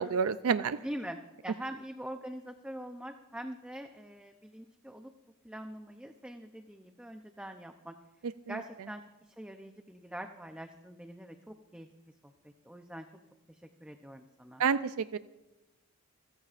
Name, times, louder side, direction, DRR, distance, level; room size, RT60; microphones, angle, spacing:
voice 1, 0.0-0.8 14.6-15.2, right 6 dB, 80° right, 13 dB, 0.4 m, -28 dB
voice 2, 0.8-5.1 5.4-8.0 8.5-13.1 13.5-14.6, right 1 dB, 5° right, 5 dB, 0.5 m, -44 dB
29.5 x 14.5 x 2.5 m, 1.0 s
head